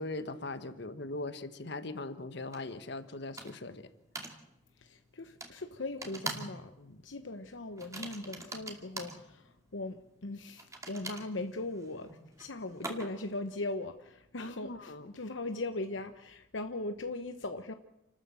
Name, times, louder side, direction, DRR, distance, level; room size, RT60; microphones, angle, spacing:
voice 1, 0.0-3.9 6.8-7.0 14.4-15.1, left 2 dB, 65° left, 11 dB, 1.4 m, -40 dB
sound 1, 2.5-2.6 3.4-3.7 4.2-4.4 5.4-5.5 6.0-6.6 6.8-7.1 7.8-9.2 10.6-13.3, right 2 dB, 15° right, 2.5 m, -42 dB
voice 2, 4.8-6.7 7.0-12.1 12.4-17.7, left 2 dB, 80° left, 8 dB, 1.0 m, -39 dB
29.0 x 13.0 x 7.7 m, 0.88 s
head